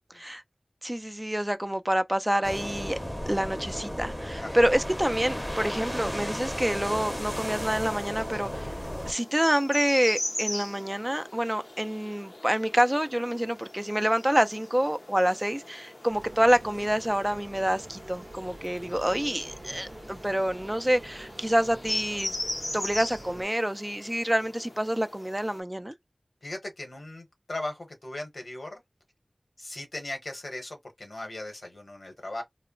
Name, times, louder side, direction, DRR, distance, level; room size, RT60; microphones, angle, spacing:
voice 1, 0.8-3.0 3.3-8.7 9.1-22.4 22.7-25.9, equal, 15° right, 0.3 m, -27 dB
sound 1, 2.4-9.1, equal, 10° left, 0.7 m, -34 dB
sound 2, 6.8-25.6, left 1 dB, 50° left, 0.5 m, -40 dB
sound 3, 16.1-23.5, right 1 dB, 65° right, 0.6 m, -46 dB
voice 2, 26.4-28.8 29.6-32.4, left 2 dB, 75° left, 0.9 m, -38 dB
2.1 x 2.0 x 3.7 m
wide cardioid pair, 45°, 0 cm